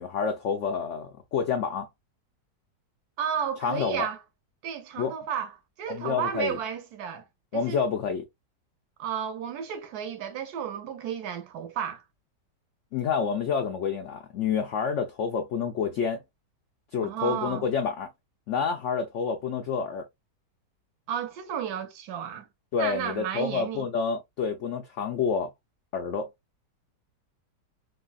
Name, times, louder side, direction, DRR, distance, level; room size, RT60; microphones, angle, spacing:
voice 1, 0.0-1.9 3.6-4.1 5.0-5.1 5.9-6.6 7.5-8.2 12.9-16.2 16.9-18.1 18.5-20.0 22.7-25.5 25.9-26.3, left 6 dB, 80° left, 0.6 m, -28 dB
voice 2, 3.2-4.2 4.6-5.5 5.8-7.2 7.5-7.8 9.0-12.0 17.0-17.7 21.1-22.5 22.8-23.9, right 8 dB, 70° right, 1.0 m, -32 dB
3.2 x 2.3 x 2.3 m
omnidirectional pair, 1.8 m